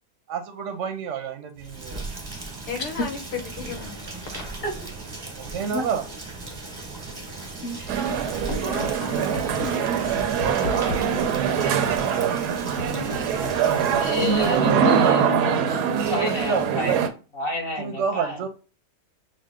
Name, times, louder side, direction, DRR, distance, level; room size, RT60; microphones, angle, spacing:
voice 1, 0.3-2.0 5.4-6.0 10.7-11.3 14.2-15.4 15.9-17.0 17.8-18.5, right 6 dB, 65° right, 0.9 m, -29 dB
Rain, 1.5-14.7, right 3 dB, 20° right, 0.6 m, -37 dB
voice 2, 2.7-4.6 7.7-8.2 8.6-9.4, left 5 dB, 75° left, 1.6 m, -36 dB
voice 3, 7.6-8.2 8.5-8.6 9.6-10.0 12.9-13.0 14.0-18.4, left 2 dB, 40° left, 1.0 m, -31 dB
sound 1, 7.9-17.1, right 7 dB, 85° right, 1.2 m, -23 dB
sound 2, 8.5-8.9 9.3-9.7 10.2-11.0 11.6-12.0 12.8-13.6, left 2 dB, 60° left, 1.7 m, -32 dB
6.3 x 2.1 x 3.6 m
omnidirectional pair, 1.7 m